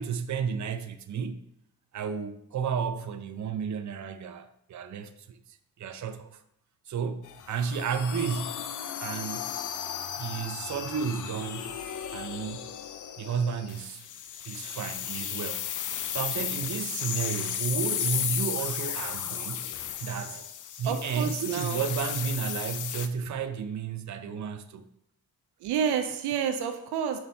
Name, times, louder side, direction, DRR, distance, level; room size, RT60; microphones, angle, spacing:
voice 1, 0.0-1.4 1.9-6.4 6.9-8.6 9.0-9.5 10.2-11.6 12.1-12.7 13.2-14.1 14.4-15.7 16.1-19.7 20.0-20.5 20.8-24.9, right 6 dB, 50° right, 0.6 m, -32 dB
sound 1, 7.2-23.1, left 9 dB, 55° left, 0.6 m, -34 dB
voice 2, 20.8-21.8 25.6-27.2, right 7 dB, 85° right, 0.6 m, -29 dB
5.6 x 3.9 x 4.3 m
supercardioid pair, 60°, 38 cm